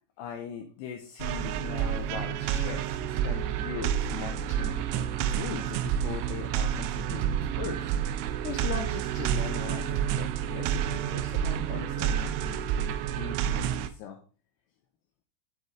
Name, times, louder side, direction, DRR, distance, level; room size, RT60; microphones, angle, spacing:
voice 1, 0.2-7.9 8.4-14.2, left 8 dB, 85° left, 3 dB, 2.5 m, -40 dB
sound 1, 1.2-13.9, right 9 dB, 85° right, 2.9 m, -29 dB
11.0 x 5.3 x 3.6 m, 0.39 s
omnidirectional pair, 5.7 m